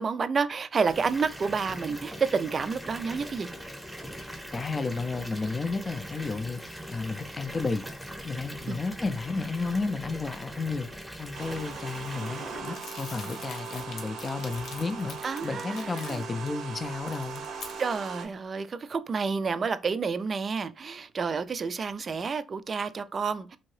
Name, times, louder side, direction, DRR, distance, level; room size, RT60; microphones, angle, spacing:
voice 1, 0.0-3.5 8.7-8.8 13.2-13.3 15.2-16.2 17.8-23.6, right 5 dB, 40° right, 0.3 m, -30 dB
Water tap faucet / Bathtub (filling or washing) / Fill (with liquid), 0.8-12.6, equal, ahead, 0.7 m, -41 dB
voice 2, 4.5-7.9 8.2-10.9 11.2-15.2 15.4-17.4, left 3 dB, 30° left, 0.4 m, -32 dB
sound 1, 11.3-18.2, right 5 dB, 75° right, 0.6 m, -39 dB
Crumpling crinkling, 12.6-16.5 16.9-18.2, left 4 dB, 65° left, 0.8 m, -45 dB
2.8 x 2.7 x 3.1 m
cardioid pair, 90°, 0 cm